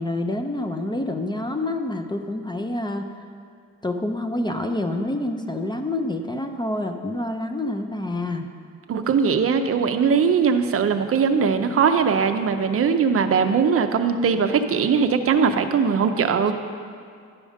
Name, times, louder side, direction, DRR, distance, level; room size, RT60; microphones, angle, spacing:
voice 1, 0.0-3.1 3.8-8.5, left 1 dB, 15° left, 5 dB, 0.5 m, -27 dB
voice 2, 8.9-16.5, right 6 dB, 50° right, 7 dB, 0.6 m, -20 dB
11.0 x 5.1 x 5.0 m, 2.2 s
cardioid pair, 90°, 30 cm